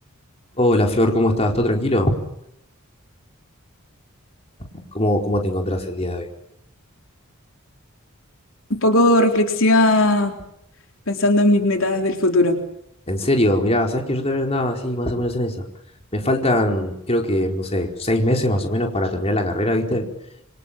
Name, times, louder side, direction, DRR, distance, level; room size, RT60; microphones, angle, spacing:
voice 1, 0.6-2.1 4.6-6.3 13.1-15.6 16.1-20.1, left 1 dB, 30° left, 2 dB, 4.7 m, -21 dB
voice 2, 8.7-10.3 11.1-12.6, left 1 dB, 65° left, 4 dB, 3.8 m, -17 dB
28.0 x 27.0 x 7.6 m, 0.79 s
head